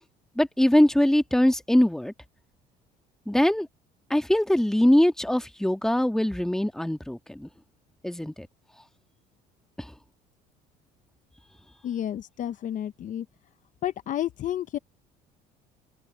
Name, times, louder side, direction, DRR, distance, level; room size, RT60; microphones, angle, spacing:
voice 1, 0.4-2.1 3.3-3.7 4.1-7.5 8.0-8.5 9.8-9.9, left 1 dB, 5° left, 1.6 m, -22 dB
voice 2, 11.8-13.3 13.8-14.8, left 11 dB, 50° left, 0.9 m, -31 dB
open air
cardioid pair, 110°, 17 cm